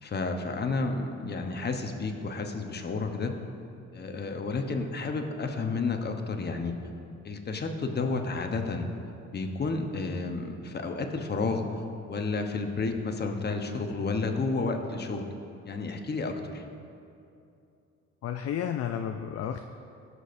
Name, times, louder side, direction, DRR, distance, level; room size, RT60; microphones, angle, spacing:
voice 1, 0.0-3.3 3.9-6.7 7.2-8.8 9.3-11.6 12.1-15.2 15.6-16.6, left 3 dB, 35° left, 4 dB, 1.0 m, -31 dB
voice 2, 18.2-19.6, left 9 dB, 55° left, 6 dB, 0.4 m, -32 dB
17.0 x 6.3 x 2.6 m, 2.6 s
cardioid pair, 90°, 30 cm